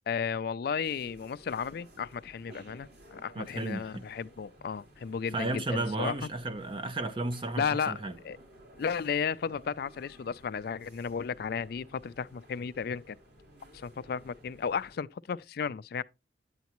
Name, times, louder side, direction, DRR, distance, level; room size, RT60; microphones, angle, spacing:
voice 1, 0.1-6.3 7.6-8.0 8.2-8.4 8.8-13.2 13.7-16.0, left 6 dB, 55° left, 0.3 m, -34 dB
sound 1, 0.8-15.0, right 1 dB, 60° right, 3.7 m, -55 dB
voice 2, 3.4-4.0 5.3-8.1, right 2 dB, 30° right, 0.5 m, -33 dB
9.3 x 8.0 x 3.0 m
head